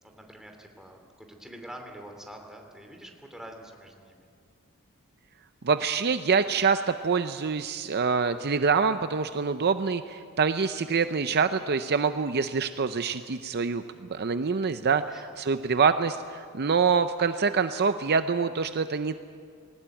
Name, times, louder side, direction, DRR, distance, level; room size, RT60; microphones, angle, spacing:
voice 1, 0.0-4.3 15.0-15.6, right 1 dB, ahead, 3 dB, 2.7 m, -46 dB
voice 2, 5.6-15.0 15.4-19.2, right 5 dB, 50° right, 10 dB, 0.6 m, -25 dB
20.5 x 19.0 x 9.0 m, 2.2 s
head